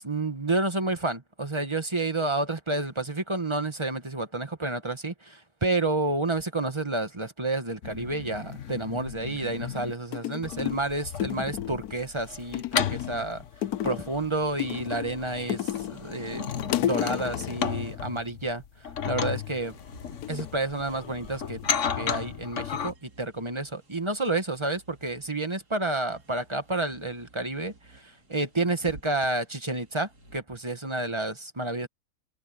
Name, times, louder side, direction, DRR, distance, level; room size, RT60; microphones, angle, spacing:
voice 1, 0.0-13.4 13.8-16.4 16.8-19.8 20.3-21.6 21.9-31.9, right 2 dB, 20° right, 1.5 m, -30 dB
sound 1, 7.8-9.9 10.4-22.9, left 7 dB, 55° left, 1.3 m, -34 dB
sound 2, 9.7-9.8 10.1-10.9 11.2-12.0 12.5-13.2 13.6-14.2 14.6-16.0 16.3-17.7 19.3-19.7 20.2-21.3 21.6-22.1, left 12 dB, 80° left, 1.2 m, -32 dB
sound 3, 19.5-30.4, right 2 dB, 85° right, 4.1 m, -54 dB
omnidirectional pair, 1.6 m